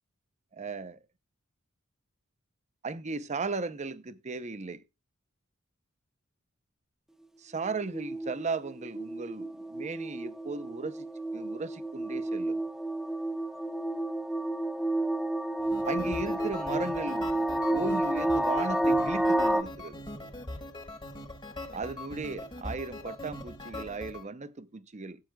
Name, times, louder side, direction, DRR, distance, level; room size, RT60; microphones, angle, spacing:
voice 1, 0.5-1.0 2.8-4.8 7.4-11.1 11.3-12.6 15.8-17.3 17.7-20.0 21.7-25.2, right 4 dB, 35° right, 0.7 m, -36 dB
sound 1, 7.6-19.6, right 1 dB, ahead, 0.7 m, -30 dB
sound 2, 15.6-24.2, left 1 dB, 25° left, 1.2 m, -42 dB
17.0 x 8.9 x 2.3 m
head